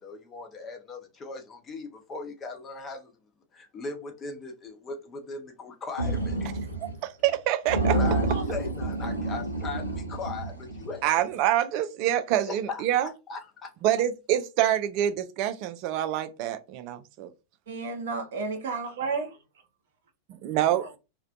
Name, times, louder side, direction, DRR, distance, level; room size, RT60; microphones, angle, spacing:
voice 1, 0.0-3.1 3.5-6.6 7.9-11.1 12.4-13.7, left 4 dB, 25° left, 0.7 m, -38 dB
sound 1, 6.0-7.0 7.3-7.4 7.7-11.1, right 2 dB, 90° left, 0.6 m, -29 dB
voice 2, 7.0-7.9 11.0-13.1 13.8-17.3 20.4-20.8, right 12 dB, 45° right, 0.3 m, -26 dB
voice 3, 17.7-19.4 20.8-21.0, right 4 dB, 60° right, 0.7 m, -32 dB
2.4 x 2.1 x 2.4 m
figure-of-eight pair, 90°, 0 cm